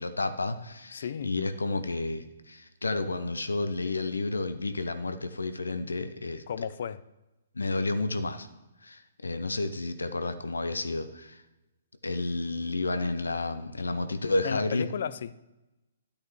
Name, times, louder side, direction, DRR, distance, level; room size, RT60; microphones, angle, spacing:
voice 1, 0.0-6.7 7.6-8.5 8.8-11.4 12.0-14.9, left 2 dB, 85° left, 10 dB, 0.8 m, -31 dB
voice 2, 0.9-1.3 6.5-7.0 14.4-15.3, left 8 dB, 60° left, 17 dB, 0.4 m, -34 dB
13.0 x 8.5 x 3.2 m, 1.0 s
figure-of-eight pair, 130°, 0 cm